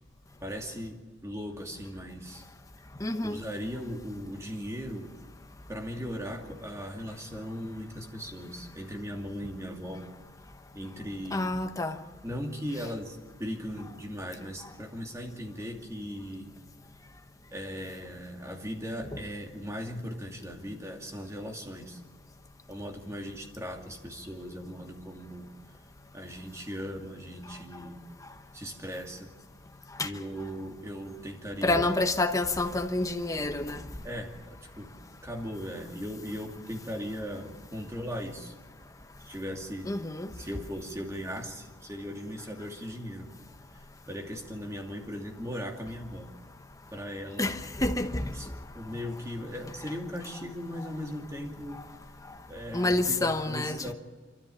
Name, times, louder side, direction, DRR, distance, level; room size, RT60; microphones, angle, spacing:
voice 1, 0.4-2.4 3.2-5.1 5.7-10.1 10.7-11.5 12.2-16.5 17.5-22.0 22.7-25.5 26.1-28.0 28.5-29.3 30.0-31.9 34.0-34.9 35.2-38.5 39.2-39.9 40.3-43.3 43.7-46.3 46.9-47.6 48.3-51.8 52.5-53.9, equal, 15° right, 2.6 m, -38 dB
voice 2, 3.0-3.4 11.3-12.0 30.0-30.1 31.6-33.9 39.9-40.3 47.4-48.4 52.7-53.9, left 2 dB, 15° left, 1.0 m, -28 dB
26.5 x 13.5 x 8.6 m
head